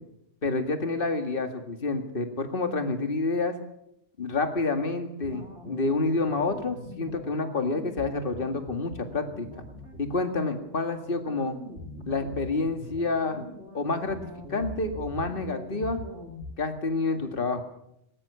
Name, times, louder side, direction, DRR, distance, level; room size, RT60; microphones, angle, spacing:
voice 1, 0.4-3.5 4.2-9.5 10.0-11.6 12.1-13.5 13.7-14.2 14.5-16.0 16.6-17.6, left 3 dB, 45° left, 7 dB, 2.2 m, -28 dB
sound 1, 5.2-16.5, left 1 dB, 70° right, 3.2 m, -42 dB
19.5 x 19.0 x 7.0 m, 0.79 s
omnidirectional pair, 1.2 m